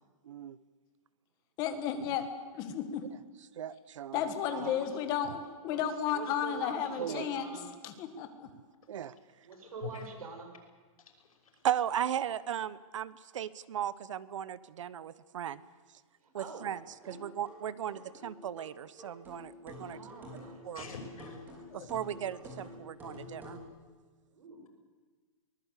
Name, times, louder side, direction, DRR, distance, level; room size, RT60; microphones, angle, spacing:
voice 1, 0.2-0.6 3.6-4.2 4.6-4.7 7.0-7.2 8.9-9.1 11.6-15.6 16.3-16.8 17.1-20.0 20.6-20.9 21.7-23.6, right 10 dB, 60° right, 18 dB, 1.0 m, -36 dB
voice 2, 1.6-2.3 2.5-3.0 4.1-7.5 7.8-8.5, left 9 dB, 20° left, 8 dB, 1.7 m, -33 dB
voice 3, 4.4-5.0 5.6-5.8 6.1-7.7 9.4-10.5 16.2-16.7 17.0-17.2 17.9-18.1 19.8-20.7 24.3-24.7, right 4 dB, 90° right, 5 dB, 6.7 m, -45 dB
voice 4, 9.6-10.1 11.0-11.7 20.7-21.9, left 6 dB, 85° left, 3 dB, 6.2 m, -47 dB
sound 1, 17.0-23.7, left 1 dB, 10° right, 4.8 m, -48 dB
23.5 x 19.5 x 8.3 m, 1.4 s
hypercardioid pair, 175°, 18 cm